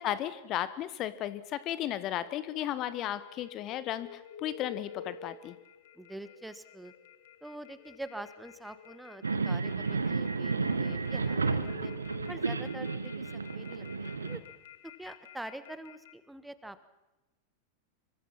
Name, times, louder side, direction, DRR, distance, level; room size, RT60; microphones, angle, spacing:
voice 1, 0.0-5.6, left 12 dB, 35° left, 15 dB, 1.2 m, -34 dB
sound 1, 1.7-16.1, left 8 dB, 55° left, 2.1 m, -50 dB
voice 2, 5.9-6.9 7.4-11.9 12.3-14.4 14.8-16.8, right 1 dB, 5° right, 13 dB, 1.4 m, -45 dB
sound 2, 9.2-14.4, right 4 dB, 75° right, 1.4 m, -32 dB
26.5 x 24.0 x 5.9 m, 1.0 s
figure-of-eight pair, 90°, 0 cm